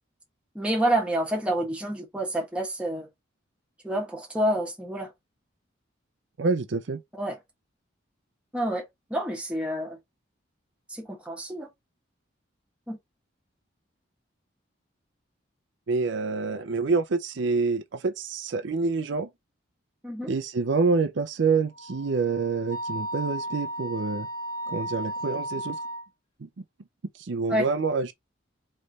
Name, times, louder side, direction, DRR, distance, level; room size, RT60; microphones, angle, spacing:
voice 1, 0.5-3.1 3.8-5.1 7.1-7.4 8.5-8.8 9.1-10.0 10.9-11.7 12.9-13.0 20.0-20.3 27.5-27.7, right 1 dB, 5° right, 1.2 m, -28 dB
voice 2, 6.4-7.0 15.9-19.3 20.3-24.3 24.7-25.8 27.2-28.1, right 4 dB, 65° right, 0.5 m, -27 dB
Wind instrument woodwind instrument, 21.7-26.1, right 1 dB, 20° left, 1.1 m, -34 dB
3.2 x 3.2 x 4.0 m
head